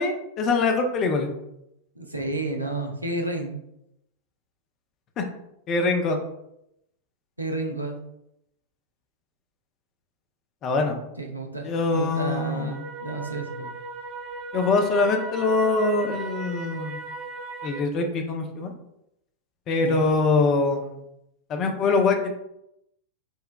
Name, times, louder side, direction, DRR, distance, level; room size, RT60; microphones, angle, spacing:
voice 1, 0.0-1.3 5.2-5.3 5.7-6.2 10.6-11.0 11.6-12.8 14.5-17.0 17.6-18.7 19.7-20.9 21.5-22.3, left 3 dB, 35° left, 4 dB, 0.5 m, -23 dB
voice 2, 2.0-3.6 7.4-8.0 11.2-13.7 19.8-20.1, right 2 dB, 85° right, 2 dB, 0.5 m, -31 dB
sound 1, 11.9-17.8, right 3 dB, 35° right, 0.5 m, -37 dB
5.4 x 2.2 x 2.2 m, 0.82 s
figure-of-eight pair, 90°, 0 cm